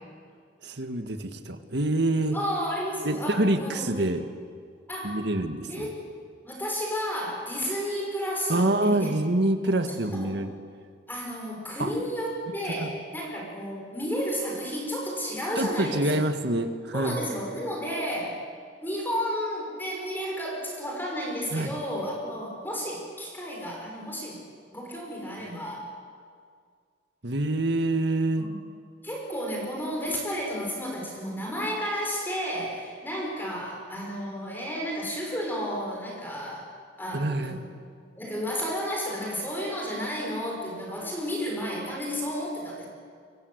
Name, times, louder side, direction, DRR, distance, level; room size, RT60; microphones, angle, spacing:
voice 1, 0.6-2.4 3.0-4.3 5.0-5.9 8.5-10.5 11.8-11.9 12.8-12.9 15.6-17.2 21.5-21.7 27.2-28.5 37.1-37.6, right 1 dB, 60° right, 7 dB, 1.9 m, -26 dB
voice 2, 2.3-4.0 4.9-5.2 5.7-5.9 6.4-9.1 9.6-9.8 10.1-10.5 11.1-16.1 16.9-18.4 18.8-24.4 24.7-25.9 28.4-28.6 29.0-36.7 37.0-37.6 38.2-42.8, equal, 10° left, -1 dB, 6.4 m, -32 dB
28.0 x 24.5 x 8.2 m, 2.1 s
head